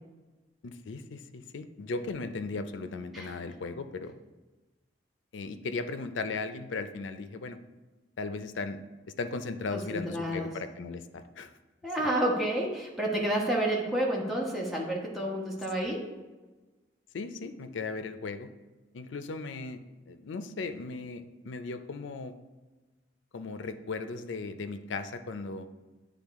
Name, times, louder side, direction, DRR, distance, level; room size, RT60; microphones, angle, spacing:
voice 1, 0.6-4.2 5.3-7.6 8.2-8.8 9.1-11.5 12.0-12.1 17.1-18.5 18.9-19.8 20.1-22.3 23.3-25.7, left 3 dB, 85° left, 10 dB, 0.5 m, -37 dB
voice 2, 9.7-10.5 11.8-16.1, right 1 dB, ahead, -4 dB, 1.1 m, -30 dB
9.4 x 3.6 x 3.6 m, 1.2 s
head